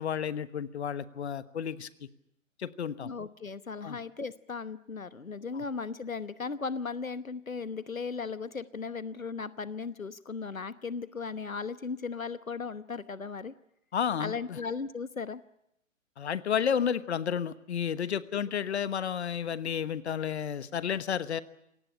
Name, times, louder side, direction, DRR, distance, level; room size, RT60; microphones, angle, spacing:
voice 1, 0.0-1.9 2.6-3.1 3.8-4.0 5.5-5.6 13.9-14.6 16.2-21.4, left 8 dB, 55° left, 15 dB, 1.3 m, -31 dB
voice 2, 3.0-13.5 14.2-15.4, left 5 dB, 90° left, 15 dB, 1.1 m, -37 dB
26.5 x 18.5 x 9.9 m, 0.80 s
figure-of-eight pair, 130°, 40 cm